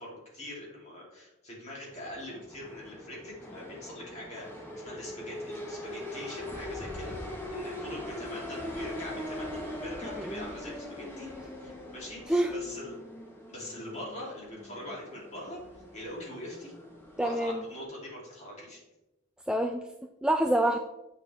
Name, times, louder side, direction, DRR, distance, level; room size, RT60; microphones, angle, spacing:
voice 1, 0.0-7.1 7.5-11.3 11.6-12.9 13.5-16.7 17.2-18.8, left 1 dB, 35° left, -5 dB, 3.0 m, -43 dB
sound 1, 1.9-17.8, left 1 dB, 10° left, 1.2 m, -42 dB
voice 2, 17.2-17.6 19.5-19.9 20.2-20.8, right 1 dB, 5° right, 4 dB, 0.3 m, -26 dB
8.1 x 6.5 x 3.4 m, 0.96 s
head